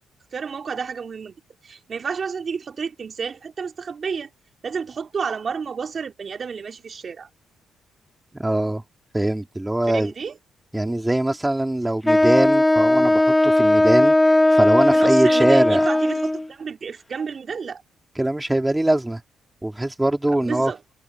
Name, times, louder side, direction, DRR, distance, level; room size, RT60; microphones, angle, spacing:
voice 1, 0.3-1.3 1.6-4.3 4.6-7.3 9.9-10.3 14.9-17.8 20.4-20.8, right 6 dB, 45° right, 2.9 m, -30 dB
voice 2, 8.4-8.8 9.1-10.1 10.7-15.8 18.2-19.2 19.6-20.7, right 1 dB, 10° right, 2.9 m, -22 dB
Wind instrument woodwind instrument, 12.0-16.5, left 1 dB, 10° left, 0.9 m, -17 dB
cardioid pair, 90°, 0 cm